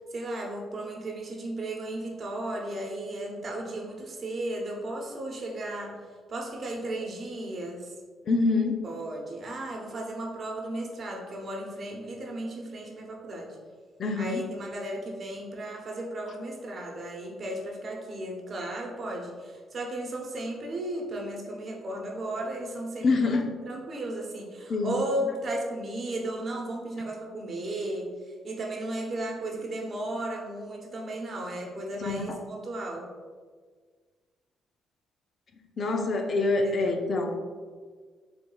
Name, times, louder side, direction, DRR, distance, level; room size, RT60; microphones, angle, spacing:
voice 1, 0.1-5.9 6.3-7.9 8.8-13.6 14.2-33.1 36.6-37.0, right 1 dB, 45° right, 0 dB, 0.9 m, -35 dB
voice 2, 8.3-8.8 14.0-14.4 23.0-23.5 24.7-25.0 32.0-32.4 35.8-37.4, left 3 dB, 50° left, 4 dB, 0.5 m, -26 dB
4.8 x 3.4 x 2.3 m, 1.6 s
cardioid pair, 90°, 0 cm